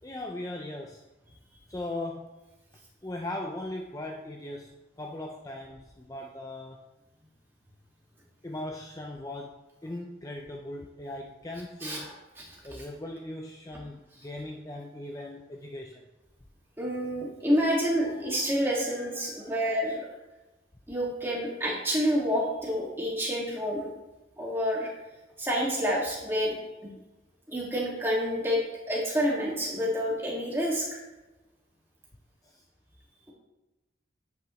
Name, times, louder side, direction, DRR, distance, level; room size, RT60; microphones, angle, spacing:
voice 1, 0.0-1.1 1.7-2.3 3.0-6.8 8.4-12.2 12.6-16.1 18.1-19.6 32.4-32.6, left 1 dB, 20° left, 2 dB, 0.5 m, -39 dB
voice 2, 11.8-12.1 12.5-12.8 16.8-20.1 20.9-23.9 24.4-24.9 25.4-26.6 27.5-28.6 28.9-31.0, equal, 10° right, -4 dB, 2.1 m, -28 dB
9.7 x 8.6 x 3.2 m, 1.1 s
head